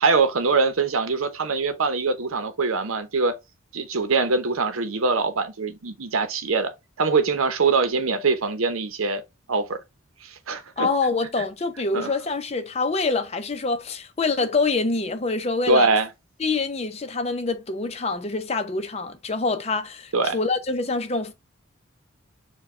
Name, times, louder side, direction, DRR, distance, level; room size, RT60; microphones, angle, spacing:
voice 1, 0.0-3.4 3.7-6.7 7.0-9.2 9.5-9.8 10.2-10.9 11.9-12.1 15.7-16.1 20.1-20.4, right 4 dB, 85° right, 0.8 m, -23 dB
voice 2, 10.8-15.9 16.4-21.3, left 3 dB, 30° left, 0.5 m, -25 dB
4.6 x 2.2 x 4.2 m
head